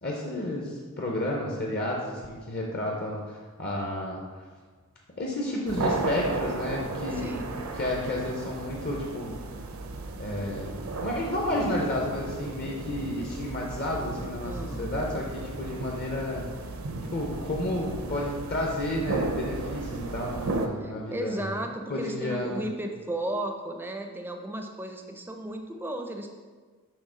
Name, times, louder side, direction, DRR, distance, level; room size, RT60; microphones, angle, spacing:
voice 1, 0.0-4.4 5.2-7.4 7.8-9.4 10.2-16.5 17.1-21.5 21.9-22.6, left 1 dB, 45° left, -2 dB, 0.7 m, -31 dB
sound 1, 5.7-20.7, right 2 dB, 70° right, 0.5 m, -34 dB
voice 2, 7.1-7.5 14.4-14.9 20.8-26.3, right 1 dB, 10° right, 4 dB, 0.4 m, -35 dB
6.5 x 3.4 x 4.9 m, 1.5 s
head